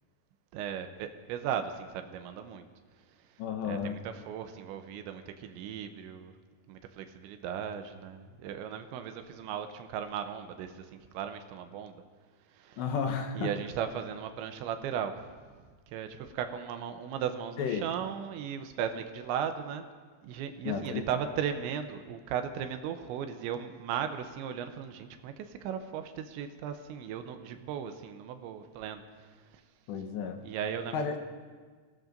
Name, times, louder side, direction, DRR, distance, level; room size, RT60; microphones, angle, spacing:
voice 1, 0.5-2.7 3.6-6.3 6.7-12.0 12.5-12.8 13.4-15.3 15.9-19.9 20.2-29.6 30.3-31.2, right 8 dB, 80° right, 8 dB, 3.0 m, -37 dB
voice 2, 3.4-4.0 12.8-13.5 17.6-17.8 20.6-21.2 29.9-30.4 30.9-31.1, left 6 dB, 75° left, 5 dB, 3.1 m, -32 dB
26.0 x 17.5 x 2.6 m, 1.5 s
omnidirectional pair, 5.3 m